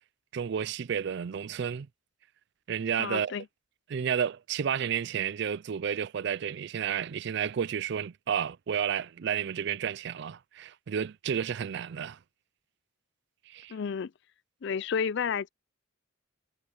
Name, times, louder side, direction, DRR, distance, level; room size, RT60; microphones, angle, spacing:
voice 1, 0.3-1.9 2.7-3.3 3.9-12.2 13.5-13.7, right 8 dB, 55° right, 0.4 m, -31 dB
voice 2, 3.0-3.4 13.7-14.1 14.6-15.5, left 6 dB, 55° left, 0.4 m, -31 dB
head